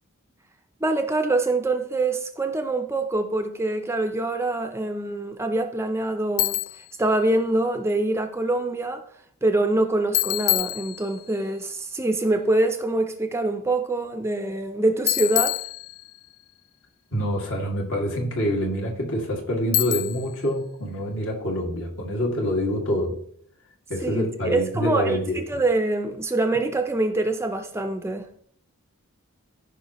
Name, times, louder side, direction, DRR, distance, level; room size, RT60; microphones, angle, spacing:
voice 1, 0.8-6.6 7.0-9.0 9.4-15.6 24.0-28.3, right 2 dB, 10° right, 0.5 m, -25 dB
Bicycle, 6.4-6.9 10.1-11.4 15.1-16.3 19.7-20.4, left 20 dB, 80° left, 0.3 m, -26 dB
voice 2, 17.1-23.2 23.9-25.4, equal, 60° left, 2.2 m, -26 dB
14.5 x 5.6 x 3.0 m
head